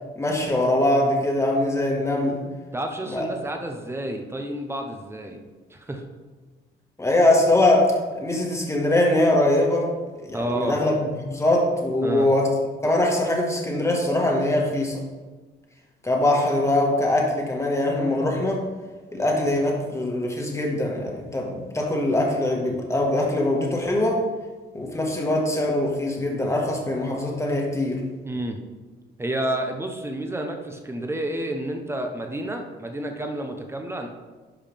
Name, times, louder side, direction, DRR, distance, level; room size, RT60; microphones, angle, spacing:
voice 1, 0.2-2.4 3.1-3.2 7.0-9.9 10.2-12.5 12.8-15.0 16.0-18.6 19.1-24.2 24.7-28.0, left 1 dB, 15° left, -1 dB, 1.8 m, -22 dB
voice 2, 2.7-5.4 5.7-6.0 10.3-10.8 12.0-12.3 28.2-28.6 29.2-34.1, right 1 dB, 10° right, 4 dB, 1.1 m, -30 dB
11.5 x 4.8 x 3.6 m, 1.3 s
cardioid pair, 90°, 20 cm